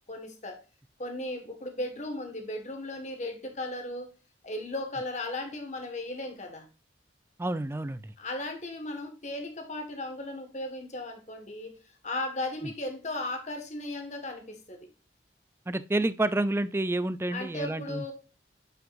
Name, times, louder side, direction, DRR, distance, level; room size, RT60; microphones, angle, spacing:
voice 1, 0.1-0.6 1.0-4.1 4.4-6.7 8.2-11.7 12.0-14.9 17.3-18.1, left 2 dB, 40° left, 1.6 m, -36 dB
voice 2, 7.4-8.1 15.7-18.0, right 2 dB, 15° right, 0.4 m, -29 dB
9.1 x 5.8 x 2.5 m
head